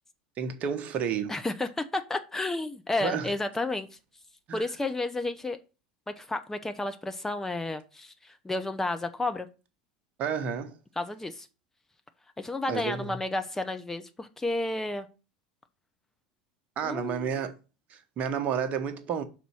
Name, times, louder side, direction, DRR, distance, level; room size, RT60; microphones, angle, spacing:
voice 1, 0.4-1.3 3.0-3.3 4.5-4.6 10.2-10.8 12.7-13.2 16.8-17.5 17.9-19.2, right 7 dB, 40° right, 1.0 m, -31 dB
voice 2, 1.3-3.9 4.5-5.6 6.2-9.5 11.0-11.5 12.4-15.1 16.8-17.3, left 2 dB, 10° left, 0.6 m, -31 dB
6.1 x 4.0 x 6.1 m
figure-of-eight pair, 75°, 4 cm